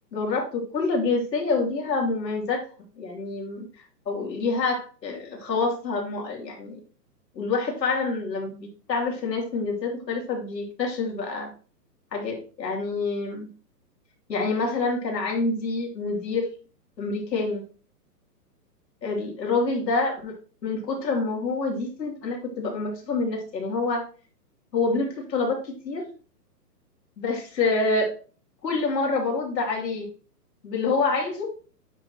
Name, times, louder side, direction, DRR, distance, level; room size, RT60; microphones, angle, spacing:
voice 1, 0.1-2.6 3.0-3.6 4.1-6.8 7.3-11.5 12.1-13.5 14.3-16.5 17.0-17.6 19.0-20.3 20.6-24.0 24.7-25.6 25.8-26.0 27.2-28.1 28.6-30.1 30.6-31.5, left 3 dB, 85° left, 0 dB, 3.0 m, -27 dB
9.3 x 4.8 x 2.9 m, 0.39 s
hypercardioid pair, 165°, 49 cm